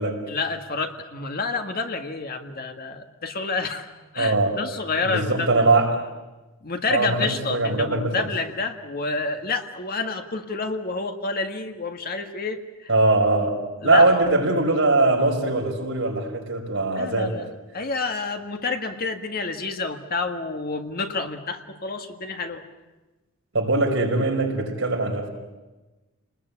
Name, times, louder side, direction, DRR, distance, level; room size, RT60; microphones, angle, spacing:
voice 1, 0.3-5.8 6.6-12.9 13.8-14.1 17.0-17.5 17.7-22.6, left 4 dB, 50° left, 6 dB, 1.8 m, -29 dB
voice 2, 4.2-4.6 5.0-6.0 6.9-8.3 12.9-17.4 23.5-25.3, right 2 dB, 70° right, 0 dB, 5.4 m, -21 dB
29.5 x 20.5 x 8.5 m, 1.1 s
head